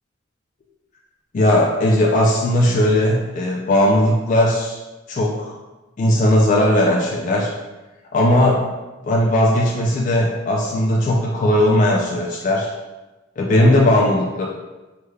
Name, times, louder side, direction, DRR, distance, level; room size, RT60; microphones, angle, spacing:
voice 1, 1.3-4.8 5.1-5.6 6.0-7.5 8.1-8.7 9.0-12.7 13.4-14.5, left 1 dB, 45° left, -2 dB, 0.3 m, -17 dB
3.4 x 2.2 x 3.2 m, 1.1 s
head